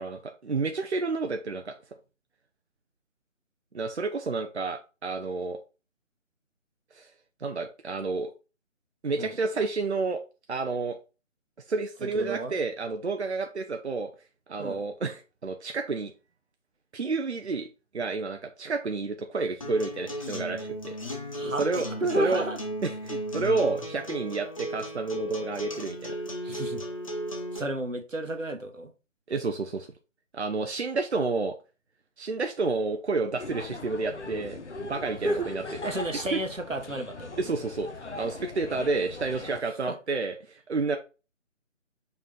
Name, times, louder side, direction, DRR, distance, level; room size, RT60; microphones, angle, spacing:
voice 1, 0.0-1.8 3.7-5.6 6.9-7.1 7.4-8.3 9.0-10.2 10.5-11.0 11.7-14.1 14.5-16.1 16.9-17.7 17.9-21.9 22.2-22.4 22.8-26.2 29.3-29.9 30.3-31.6 32.2-35.6 37.4-37.9 38.1-41.0, right 3 dB, 60° right, 0.8 m, -30 dB
voice 2, 12.0-12.6 14.6-14.8 21.3-21.7 22.0-22.6 26.4-26.8 27.5-28.9 35.2-35.5 35.8-37.4 39.9-40.0, right 1 dB, 85° right, 1.4 m, -31 dB
Acoustic guitar, 19.6-27.6, equal, 25° left, 0.8 m, -35 dB
sound 1, 33.4-39.6, left 3 dB, 65° left, 0.9 m, -40 dB
5.7 x 4.7 x 3.9 m
figure-of-eight pair, 155°, 38 cm